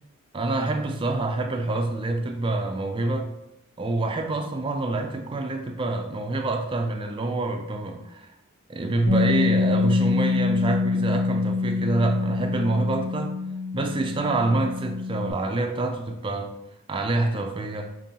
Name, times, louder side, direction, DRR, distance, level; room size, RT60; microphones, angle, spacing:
voice 1, 0.3-3.3 3.8-8.3 8.7-13.4 13.7-16.5 16.9-17.9, right 2 dB, 25° right, 0.3 m, -26 dB
Bass guitar, 9.1-15.3, left 4 dB, 80° left, 1.5 m, -25 dB
5.3 x 2.6 x 2.8 m
head